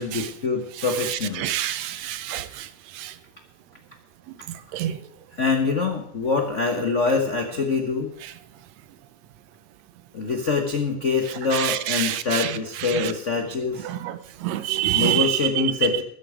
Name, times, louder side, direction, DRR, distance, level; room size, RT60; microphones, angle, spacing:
voice 1, 0.0-1.5 5.3-8.1 10.1-13.9 14.9-16.0, left 4 dB, 80° left, 0.6 m, -25 dB
voice 2, 1.4-2.4 4.7-4.9 14.4-15.2, right 13 dB, 75° right, 1.9 m, -24 dB
13.5 x 10.0 x 4.9 m
omnidirectional pair, 3.3 m